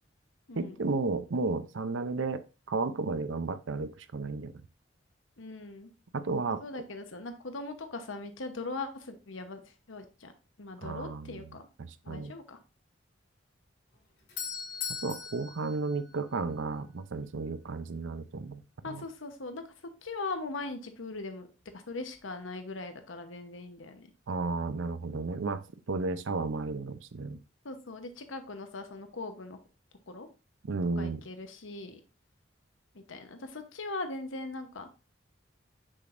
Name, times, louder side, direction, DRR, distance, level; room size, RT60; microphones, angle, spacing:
voice 1, 0.5-4.6 6.1-6.6 10.8-11.5 12.1-12.3 15.0-19.0 24.3-27.4 30.6-31.2, right 3 dB, 80° right, 13 dB, 0.6 m, -33 dB
voice 2, 5.4-5.9 6.6-9.6 9.9-10.3 10.6-11.7 12.0-12.6 18.8-19.6 20.0-21.5 21.7-24.1 27.6-29.6 30.1-30.3 31.0-32.0 32.9-34.9, left 3 dB, 90° left, 7 dB, 1.0 m, -40 dB
Doorbell, 13.9-16.8, left 7 dB, 60° left, 2.3 m, -40 dB
6.3 x 6.0 x 2.5 m, 0.31 s
head